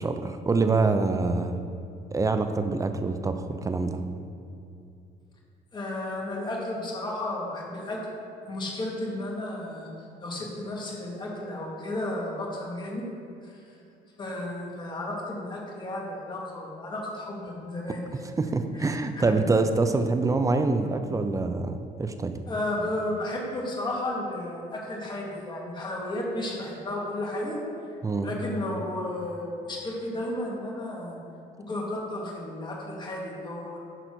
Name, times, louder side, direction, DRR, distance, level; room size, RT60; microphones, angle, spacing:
voice 1, 0.0-1.6 2.1-4.0 18.4-22.4 28.0-28.3, right 3 dB, 20° right, 8 dB, 0.5 m, -25 dB
voice 2, 5.7-8.0 8.5-9.9 10.2-13.0 14.2-18.0 19.2-19.3 22.5-27.6 28.2-31.2 31.7-33.8, left 1 dB, 25° left, -3 dB, 2.2 m, -33 dB
10.0 x 4.0 x 6.3 m, 2.6 s
cardioid pair, 110°, 17 cm